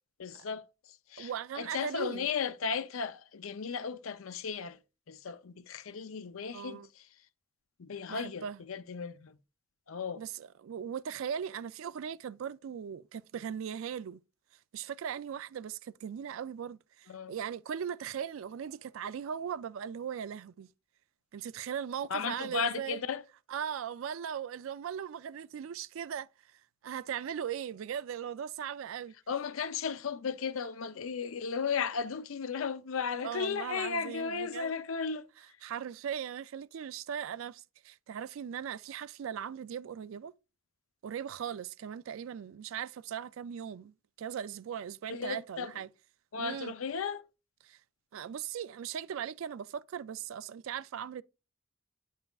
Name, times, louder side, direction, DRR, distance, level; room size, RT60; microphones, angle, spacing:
voice 1, 0.2-4.8 5.1-7.1 7.8-9.4 9.9-10.2 17.1-17.3 22.1-23.2 29.3-35.3 45.1-45.7 46.3-47.2, left 6 dB, 85° left, 0.6 m, -35 dB
voice 2, 1.2-2.3 6.5-6.9 8.1-8.6 10.2-14.2 14.7-20.7 21.3-23.0 23.5-26.3 26.8-29.1 33.2-34.7 35.6-40.3 41.0-43.9 44.2-45.9 46.4-46.7 47.6-47.8 48.1-51.2, right 8 dB, 80° right, 0.3 m, -39 dB
9.1 x 5.5 x 2.3 m
head